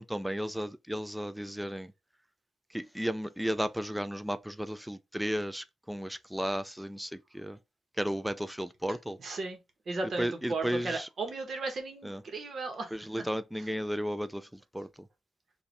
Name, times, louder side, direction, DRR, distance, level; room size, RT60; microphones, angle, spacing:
voice 1, 0.0-1.9 2.7-7.6 8.0-9.2 10.2-11.1 12.0-12.2 12.9-14.9, equal, 5° right, 0.4 m, -34 dB
voice 2, 9.2-9.6 9.9-13.2, right 3 dB, 55° right, 1.3 m, -35 dB
5.1 x 2.7 x 3.3 m
cardioid pair, 100°, 0 cm